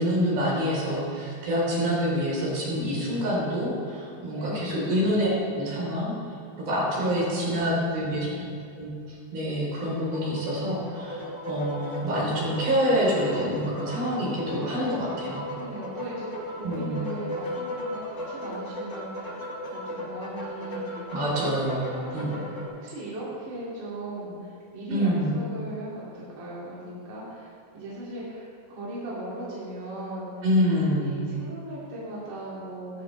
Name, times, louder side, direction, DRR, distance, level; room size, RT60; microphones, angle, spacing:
voice 1, 0.0-6.1 6.6-8.3 8.8-15.5 16.6-17.0 21.1-22.3 24.9-25.3 30.4-31.2, equal, 75° right, -5 dB, 5.7 m, -27 dB
voice 2, 4.3-4.9 7.0-8.5 14.9-19.4 19.7-21.1 21.3-30.5 31.0-33.0, right 1 dB, 55° right, -8 dB, 3.8 m, -38 dB
sound 1, 9.8-22.6, left 1 dB, 25° left, 1.8 m, -36 dB
16.0 x 14.5 x 3.3 m, 2.5 s
omnidirectional pair, 4.4 m